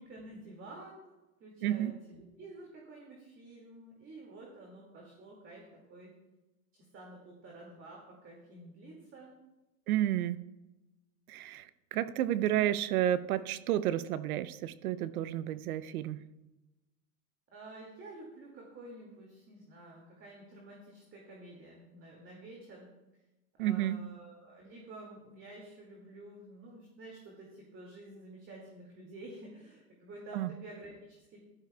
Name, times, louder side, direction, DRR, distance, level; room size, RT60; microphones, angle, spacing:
voice 1, 0.0-6.1 6.7-9.3 17.5-22.9 23.6-31.4, right 2 dB, 25° right, -2 dB, 2.3 m, -50 dB
voice 2, 1.6-1.9 9.9-10.5 11.3-16.2 23.6-24.0 30.3-30.5, right 12 dB, 70° right, 14 dB, 0.7 m, -31 dB
13.0 x 12.0 x 2.3 m, 1.0 s
hypercardioid pair, 115°, 45 cm